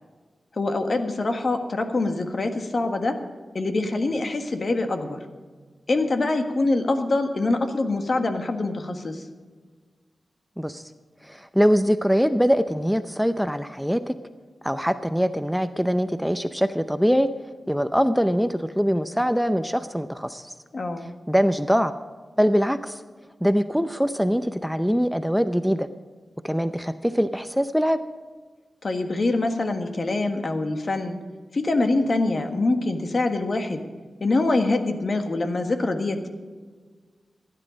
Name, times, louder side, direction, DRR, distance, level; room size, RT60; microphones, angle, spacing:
voice 1, 0.5-3.2 3.5-5.2 5.9-9.3 20.7-21.1 28.8-31.2 31.5-33.9 34.2-36.3, left 2 dB, 55° left, 6 dB, 1.5 m, -24 dB
voice 2, 11.2-14.1 14.6-17.3 17.7-20.5 21.3-21.9 22.4-23.0 23.4-25.9 26.4-28.0, equal, ahead, 11 dB, 0.6 m, -23 dB
16.0 x 10.0 x 5.1 m, 1.5 s
cardioid pair, 55°, 0 cm